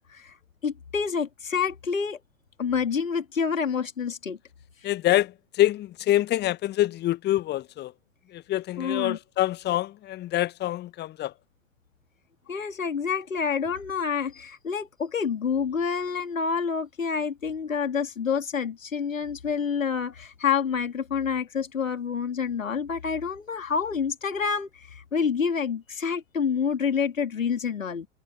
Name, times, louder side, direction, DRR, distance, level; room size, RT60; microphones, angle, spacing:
voice 1, 0.6-2.2 2.6-4.4 8.8-9.2 12.5-28.1, left 6 dB, 75° left, 2.7 m, -28 dB
voice 2, 4.8-7.9 8.3-11.3, left 14 dB, 25° left, 1.1 m, -26 dB
figure-of-eight pair, 90°, 40 cm